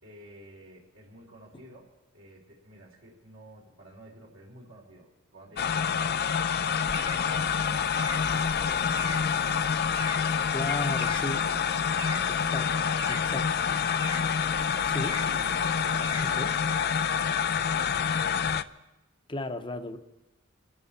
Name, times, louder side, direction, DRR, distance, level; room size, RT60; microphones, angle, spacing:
voice 1, 0.0-6.3 7.1-9.1 12.0-14.1 15.1-18.0, right 1 dB, 70° right, 3.4 m, -51 dB
sound 1, 5.6-18.6, left 7 dB, 50° left, 0.5 m, -27 dB
sound 2, 6.8-16.4, right 2 dB, 20° right, 0.9 m, -43 dB
voice 2, 10.5-11.5 12.5-12.7 13.3-13.5 14.8-15.2 16.2-16.5 19.3-20.0, left 2 dB, 25° left, 0.9 m, -34 dB
26.5 x 12.0 x 4.3 m
head